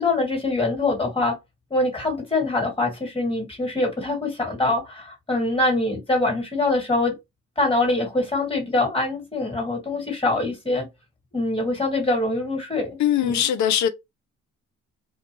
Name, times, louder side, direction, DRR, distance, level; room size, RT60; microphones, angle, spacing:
voice 1, 0.0-1.4 1.7-7.1 7.6-10.9 11.3-13.5, left 2 dB, 20° left, 1.7 m, -24 dB
voice 2, 13.0-13.9, left 10 dB, 70° left, 0.6 m, -21 dB
2.5 x 2.2 x 2.9 m
cardioid pair, 90°, 30 cm